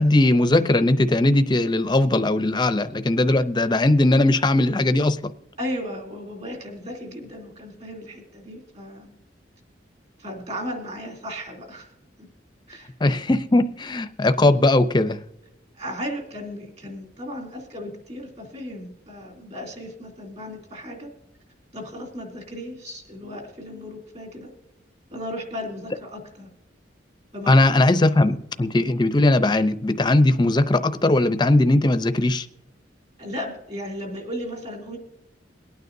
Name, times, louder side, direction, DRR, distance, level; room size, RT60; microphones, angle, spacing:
voice 1, 0.0-5.2 13.0-15.2 27.5-32.5, left 2 dB, 25° left, 0.5 m, -19 dB
voice 2, 5.6-9.1 10.2-11.9 12.7-12.9 15.7-21.1 21.7-24.5 25.1-26.5 27.3-27.5 27.8-28.4 33.2-35.0, equal, 35° right, 2.8 m, -35 dB
23.0 x 9.3 x 2.7 m
head